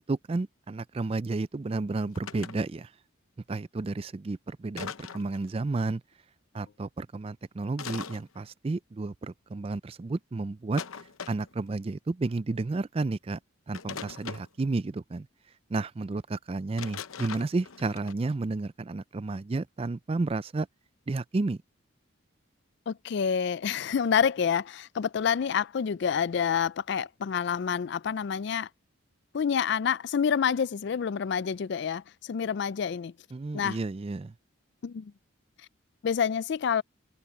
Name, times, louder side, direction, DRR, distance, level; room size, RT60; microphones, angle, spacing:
voice 1, 0.0-2.9 3.5-6.0 6.5-10.8 11.3-13.4 13.7-15.3 15.7-20.7 21.1-21.6 33.3-34.3, right 3 dB, 30° right, 0.4 m, -31 dB
sound 1, 2.0-2.6 4.8-5.4 7.8-8.2 10.8-11.6 13.7-14.5 16.8-18.1, left 6 dB, 85° left, 0.8 m, -40 dB
voice 2, 22.9-28.7 29.3-33.1 33.5-33.8 34.8-35.1 36.0-36.8, left 7 dB, 55° left, 0.3 m, -28 dB
head